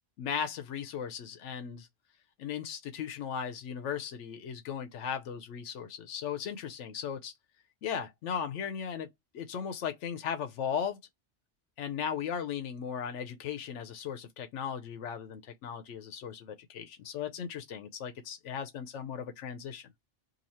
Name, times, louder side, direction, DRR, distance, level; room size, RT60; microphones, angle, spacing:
voice 1, 0.2-1.9 2.4-7.3 7.8-9.1 9.3-11.0 11.8-19.9, left 8 dB, 80° left, 0.9 m, -37 dB
2.8 x 2.7 x 4.1 m
omnidirectional pair, 1.2 m